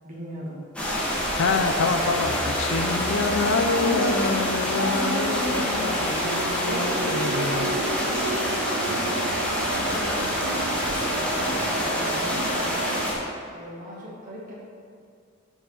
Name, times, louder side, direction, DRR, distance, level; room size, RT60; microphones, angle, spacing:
voice 1, 0.0-0.6 3.7-4.4 4.7-6.0 6.6-12.9 13.5-14.5, right 1 dB, 40° right, -6 dB, 1.7 m, -35 dB
sound 1, 0.8-13.1, equal, 5° left, 1.3 m, -26 dB
voice 2, 1.4-7.7, left 4 dB, 65° left, 8 dB, 0.5 m, -27 dB
sound 2, 1.9-11.7, equal, 45° left, 1.0 m, -43 dB
sound 3, 5.5-13.1, right 4 dB, 65° right, 0.4 m, -34 dB
5.7 x 5.0 x 6.5 m, 2.3 s
head